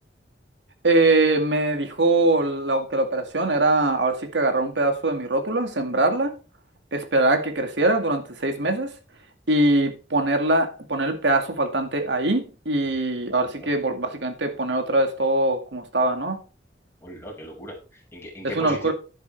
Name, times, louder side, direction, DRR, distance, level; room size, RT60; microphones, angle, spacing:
voice 1, 0.8-6.3 6.9-8.9 9.5-16.4 18.5-18.9, right 2 dB, 90° right, 2.2 m, -22 dB
voice 2, 17.0-18.9, equal, 15° left, 5.9 m, -37 dB
11.0 x 10.5 x 3.4 m
head